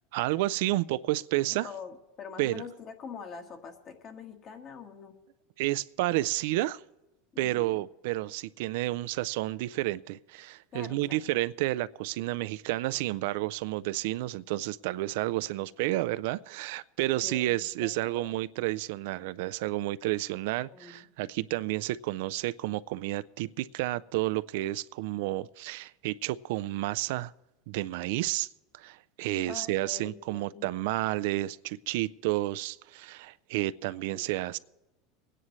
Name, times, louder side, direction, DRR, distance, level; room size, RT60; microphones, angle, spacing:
voice 1, 0.1-1.7 2.4-2.6 5.6-6.8 7.4-27.3 27.7-28.5 28.7-34.6, right 17 dB, 70° right, 17 dB, 0.3 m, -31 dB
voice 2, 1.5-5.1 7.3-7.8 10.7-11.2 17.2-18.4 20.5-21.1 29.5-30.6 34.1-34.5, left 6 dB, 40° left, 5 dB, 1.6 m, -45 dB
24.0 x 9.9 x 3.1 m, 1.0 s
supercardioid pair, 130°, 0 cm